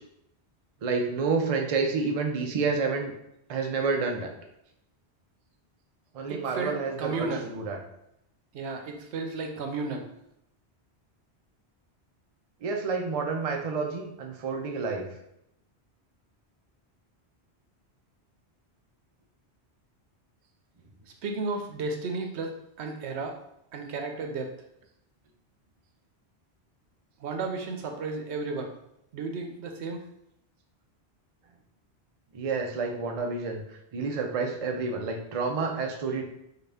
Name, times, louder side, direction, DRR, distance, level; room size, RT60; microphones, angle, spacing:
voice 1, 0.8-3.1 3.5-4.3 6.1-7.8 12.6-15.1 32.3-33.6 33.9-36.2, right 4 dB, 50° right, 2 dB, 0.5 m, -29 dB
voice 2, 6.3-7.5 8.5-10.1 21.2-23.4 23.7-24.5 27.2-28.7 29.1-30.0, right 3 dB, 85° right, 3 dB, 0.9 m, -33 dB
3.8 x 2.4 x 3.3 m, 0.79 s
omnidirectional pair, 1.1 m